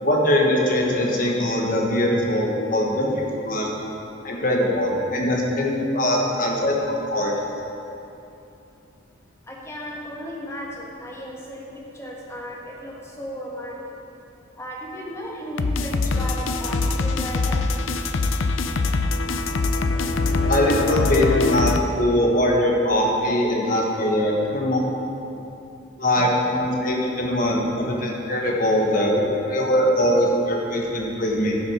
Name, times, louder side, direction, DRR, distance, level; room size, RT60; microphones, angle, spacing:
voice 1, 0.0-3.7 4.2-7.3 20.4-24.8 26.0-31.6, left 1 dB, 40° left, -1 dB, 1.2 m, -22 dB
voice 2, 9.5-11.7 11.9-13.8 14.6-17.6, equal, 15° left, -3 dB, 1.3 m, -35 dB
sound 1, 15.6-21.8, left 3 dB, 75° left, 0.5 m, -23 dB
11.5 x 6.1 x 4.9 m, 2.8 s
head